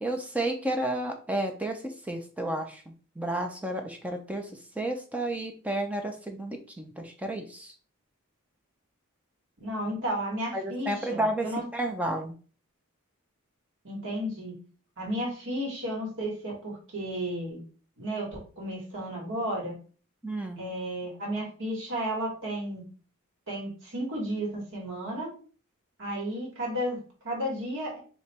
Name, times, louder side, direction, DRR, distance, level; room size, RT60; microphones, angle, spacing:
voice 1, 0.0-1.8 2.1-4.5 4.8-7.7 10.5-12.3 20.2-20.6, right 1 dB, 5° right, 3 dB, 0.5 m, -31 dB
voice 2, 9.6-11.6 13.8-14.5 15.0-17.6 18.0-19.7 20.6-22.8 23.5-25.3 26.0-28.0, right 1 dB, 60° right, -2 dB, 1.8 m, -33 dB
3.3 x 2.9 x 4.3 m, 0.39 s
head